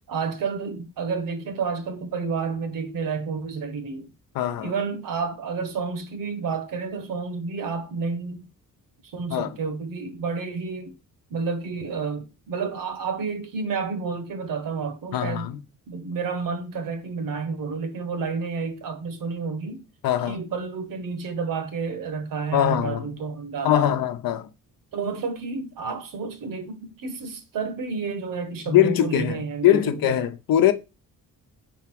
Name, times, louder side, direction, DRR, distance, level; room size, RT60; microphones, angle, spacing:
voice 1, 0.1-4.1 4.6-8.5 9.0-10.9 11.3-15.5 15.9-19.8 20.2-24.0 24.9-30.2, right 5 dB, 70° right, 1.3 m, -30 dB
voice 2, 4.3-4.7 9.3-9.6 15.1-15.6 20.0-20.4 22.5-23.1 23.6-24.5 28.7-30.7, left 11 dB, 80° left, 0.8 m, -22 dB
4.8 x 4.3 x 5.9 m
cardioid pair, 165°, 34 cm